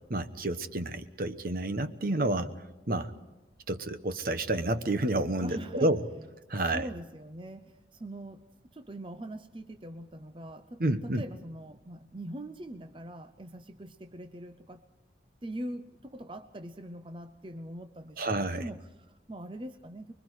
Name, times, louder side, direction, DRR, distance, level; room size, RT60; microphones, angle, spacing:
voice 1, 0.1-2.5 2.9-3.1 3.7-6.0 6.5-6.9 10.8-11.2 18.2-18.7, right 1 dB, 55° right, 10 dB, 1.1 m, -29 dB
voice 2, 5.4-5.9 6.6-8.4 8.7-14.8 15.4-20.1, right 1 dB, 30° right, 8 dB, 0.7 m, -42 dB
25.5 x 22.5 x 4.9 m, 1.0 s
head